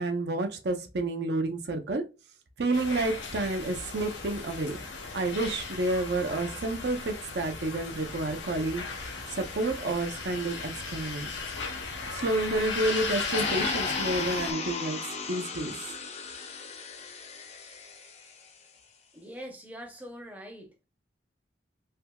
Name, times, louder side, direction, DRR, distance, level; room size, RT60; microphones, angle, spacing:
voice 1, 0.0-2.0 2.6-4.8 5.1-8.8 9.4-11.3 12.1-15.0 15.3-15.8, right 2 dB, 65° right, 0.6 m, -30 dB
sound 1, 2.7-14.5, left 4 dB, 85° left, 0.8 m, -36 dB
sound 2, 13.3-18.3, left 4 dB, 35° left, 0.5 m, -35 dB
voice 2, 19.1-20.8, equal, 10° right, 0.6 m, -43 dB
3.4 x 2.7 x 2.3 m
head